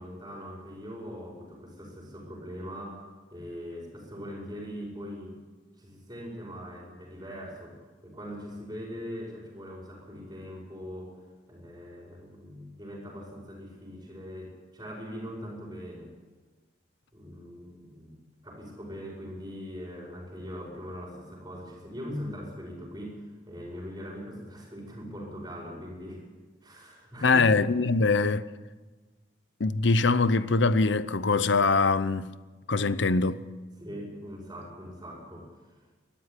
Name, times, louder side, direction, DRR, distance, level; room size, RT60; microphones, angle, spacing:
voice 1, 0.0-5.4 5.8-16.1 17.1-18.2 18.4-26.2 26.6-27.5 33.8-35.8, equal, 20° right, 5.1 m, -41 dB
voice 2, 27.2-28.4 29.6-32.3 32.7-33.4, left 3 dB, 70° left, 0.8 m, -23 dB
21.5 x 13.0 x 9.8 m
head